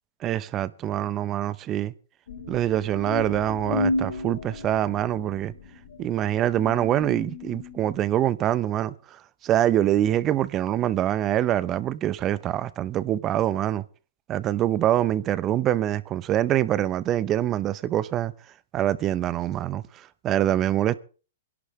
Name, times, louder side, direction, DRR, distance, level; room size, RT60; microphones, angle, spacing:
voice 1, 0.2-1.9 2.5-5.5 6.0-13.8 14.3-18.3 18.7-21.0, right 12 dB, 30° right, 0.7 m, -25 dB
sound 1, 2.3-8.0, left 3 dB, 75° left, 5.2 m, -33 dB
24.5 x 11.5 x 3.2 m
hypercardioid pair, 130°, 0 cm